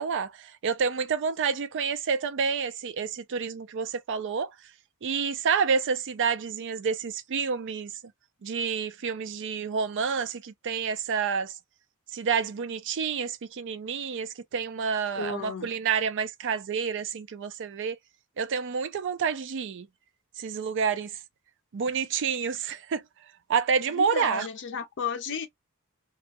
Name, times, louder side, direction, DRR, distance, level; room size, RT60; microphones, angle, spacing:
voice 1, 0.0-4.5 5.0-7.9 8.4-11.5 12.1-18.0 18.4-19.9 20.4-21.2 21.7-23.0 23.5-24.5, right 6 dB, 55° right, 0.4 m, -29 dB
voice 2, 15.2-15.7 23.9-25.5, left 6 dB, 55° left, 0.5 m, -33 dB
2.3 x 2.2 x 2.8 m
head